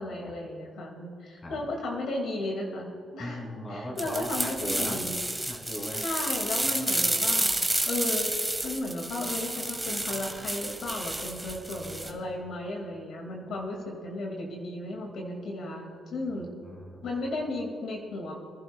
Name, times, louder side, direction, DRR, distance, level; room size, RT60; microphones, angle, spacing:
voice 1, 0.0-5.2 6.0-7.5 7.9-8.3 8.6-16.5 17.0-18.4, left 2 dB, 70° left, 0 dB, 2.2 m, -34 dB
voice 2, 3.2-5.0 5.5-6.0 6.6-7.2 11.5-11.6 12.0-12.4 13.5-13.6 16.6-17.5, left 1 dB, 30° left, 0 dB, 2.9 m, -40 dB
sound 1, 4.0-12.1, right 1 dB, 5° right, 1.6 m, -30 dB
25.5 x 11.0 x 2.3 m, 2.1 s
cardioid pair, 90°, 0 cm